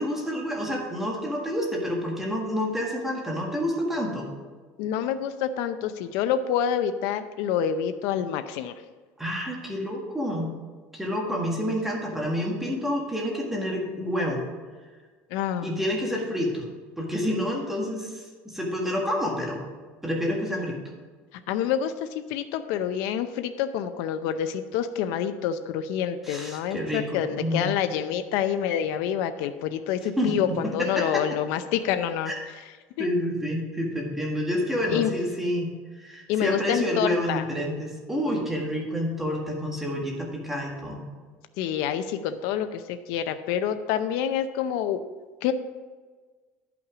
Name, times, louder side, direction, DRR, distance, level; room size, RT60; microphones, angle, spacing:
voice 1, 0.0-4.3 9.2-10.5 10.9-14.4 15.6-16.6 17.0-19.6 20.0-20.8 26.2-27.7 30.2-31.2 32.2-32.3 33.0-41.1, equal, 5° right, -1 dB, 1.6 m, -28 dB
voice 2, 4.8-8.7 15.3-15.8 21.5-32.3 33.0-33.1 34.9-35.1 36.3-37.4 41.6-45.0 45.4-45.5, left 9 dB, 75° left, 9 dB, 0.6 m, -27 dB
11.0 x 5.9 x 5.0 m, 1.4 s
cardioid pair, 140°, 5 cm